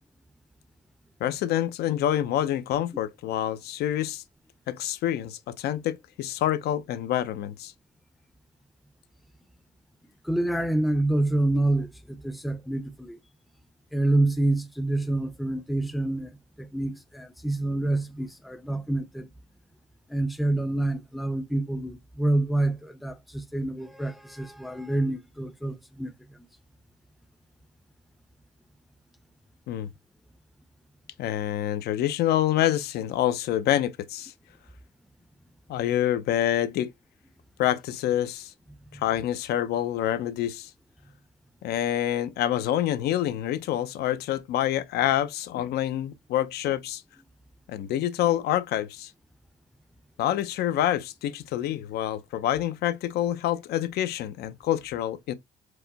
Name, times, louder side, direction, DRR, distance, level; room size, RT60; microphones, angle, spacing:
voice 1, 1.2-4.2 4.7-7.7 29.7-29.9 31.2-34.3 35.7-36.9 37.6-38.5 38.9-40.7 41.6-47.0 47.7-49.1 50.2-55.3, left 12 dB, 70° left, 0.6 m, -27 dB
voice 2, 10.2-13.2 13.9-19.3 20.1-26.1 38.9-39.0, right 2 dB, ahead, 0.5 m, -27 dB
4.7 x 2.2 x 3.9 m
cardioid pair, 110°, 17 cm